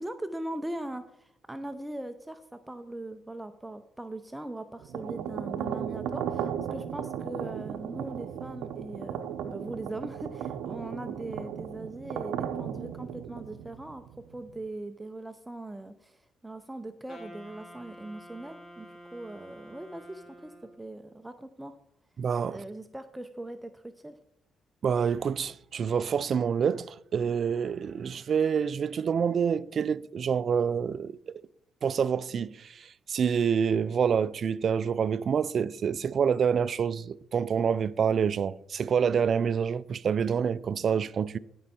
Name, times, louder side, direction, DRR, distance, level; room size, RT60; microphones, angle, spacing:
voice 1, 0.0-21.7 22.5-24.2, right 1 dB, 10° right, 0.6 m, -40 dB
sound 1, 4.8-14.6, right 9 dB, 85° right, 0.7 m, -36 dB
Wind instrument woodwind instrument, 17.1-20.9, equal, 55° left, 4.0 m, -49 dB
voice 2, 22.2-22.6 24.8-31.4 31.8-41.4, right 7 dB, 55° right, 0.4 m, -27 dB
15.5 x 5.5 x 4.3 m
cardioid pair, 90°, 0 cm